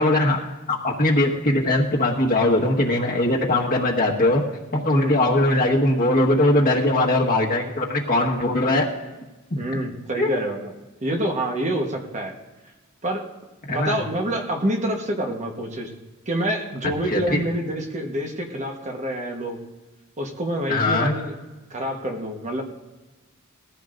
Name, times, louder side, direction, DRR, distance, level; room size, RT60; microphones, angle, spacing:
voice 1, 0.0-4.4 4.7-8.9 9.5-9.6 10.2-10.3 13.7-14.0 17.1-17.4 20.7-21.1, left 1 dB, 45° left, 0 dB, 1.5 m, -20 dB
voice 2, 9.6-10.7 11.0-12.3 13.0-13.3 13.7-15.9 16.3-19.6 20.2-21.3 21.7-22.6, right 1 dB, 35° right, 2 dB, 1.2 m, -27 dB
20.0 x 14.5 x 2.6 m, 1.2 s
head